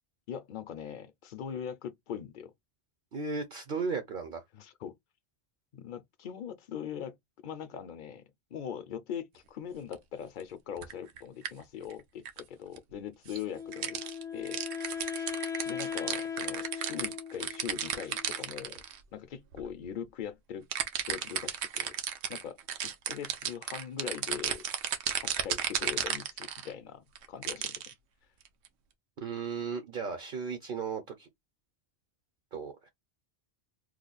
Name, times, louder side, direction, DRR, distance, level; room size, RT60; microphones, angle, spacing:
voice 1, 0.3-2.5 4.5-4.9 5.7-7.2 7.4-8.2 8.5-14.0 14.3-14.6 15.7-18.8 19.1-20.7 21.1-21.9 22.3-22.6 22.8-24.7 25.2-27.9, left 8 dB, 60° left, 0.6 m, -41 dB
voice 2, 3.1-4.4 29.2-31.3 32.5-32.7, right 5 dB, 55° right, 0.8 m, -35 dB
sound 1, 9.9-10.0 10.8-11.2 11.5-11.6 11.9-12.0 12.3-12.4 12.8-12.9 13.3-13.4 13.7-19.0 19.5-19.7 20.7-26.7 27.2-27.9 28.5-28.7, right 8 dB, 85° right, 0.9 m, -34 dB
Wind instrument woodwind instrument, 13.5-18.6, left 7 dB, 5° left, 0.4 m, -38 dB
3.1 x 2.2 x 3.8 m
omnidirectional pair, 1.1 m